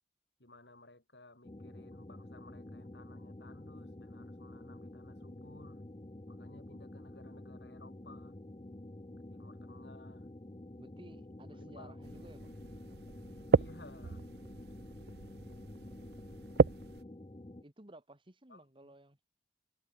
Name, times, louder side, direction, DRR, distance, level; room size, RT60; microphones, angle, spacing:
voice 1, 0.4-5.9 6.3-8.4 9.2-10.3 11.5-11.9 13.5-14.2 18.5-18.9, left 2 dB, 75° left, 7.5 m, -57 dB
sound 1, 1.4-17.6, left 1 dB, 30° left, 0.8 m, -49 dB
voice 2, 10.8-12.6 17.6-19.2, right 1 dB, 30° right, 2.4 m, -56 dB
sound 2, 12.0-17.0, right 4 dB, 65° right, 0.5 m, -33 dB
head